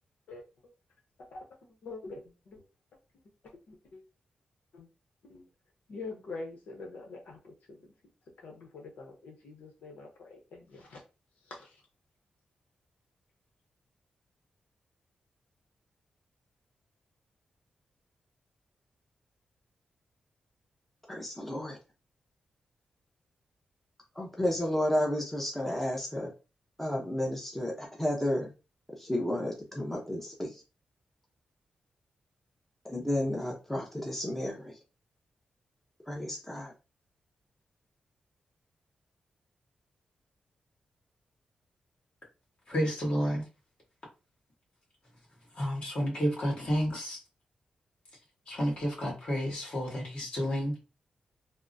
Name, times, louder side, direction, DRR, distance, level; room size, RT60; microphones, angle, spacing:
voice 1, 0.3-0.7 1.2-1.4 1.8-2.6 3.1-3.2 3.7-4.0 4.7-4.9 5.3-5.5 5.9-7.8 8.4-11.0 11.5-11.8, left 3 dB, 85° left, 0 dB, 0.8 m, -45 dB
voice 2, 21.1-21.8 24.2-26.3 26.8-28.5 29.0-30.6 32.9-34.8 36.1-36.7, left 1 dB, 10° left, -1 dB, 0.7 m, -32 dB
voice 3, 42.7-43.4 45.6-47.2 48.5-50.8, equal, 45° left, -3 dB, 1.7 m, -30 dB
3.5 x 2.0 x 2.6 m, 0.30 s
wide cardioid pair, 110°, 3 cm